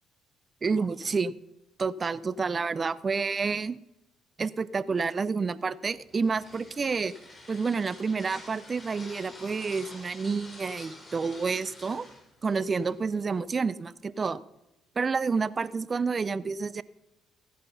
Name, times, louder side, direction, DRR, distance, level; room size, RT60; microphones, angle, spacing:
voice 1, 0.6-1.4 1.8-3.8 4.4-7.1 7.5-12.1 12.4-14.4 15.0-16.8, right 4 dB, 35° right, 18 dB, 0.6 m, -29 dB
sound 1, 5.9-13.4, left 2 dB, 30° left, 4.2 m, -48 dB
15.5 x 9.4 x 5.6 m, 0.93 s
supercardioid pair, 70°, 0 cm